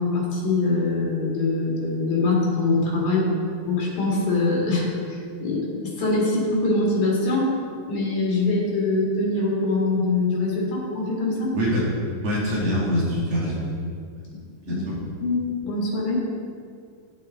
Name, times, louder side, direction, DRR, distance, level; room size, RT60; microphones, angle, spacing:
voice 1, 0.0-3.3 3.7-7.5 7.9-11.6 14.7-14.9 15.2-16.2, left 3 dB, 80° left, -5 dB, 3.5 m, -23 dB
voice 2, 12.2-13.6 14.6-14.9, equal, 60° right, -6 dB, 3.3 m, -24 dB
9.9 x 8.7 x 3.7 m, 2.2 s
omnidirectional pair, 3.4 m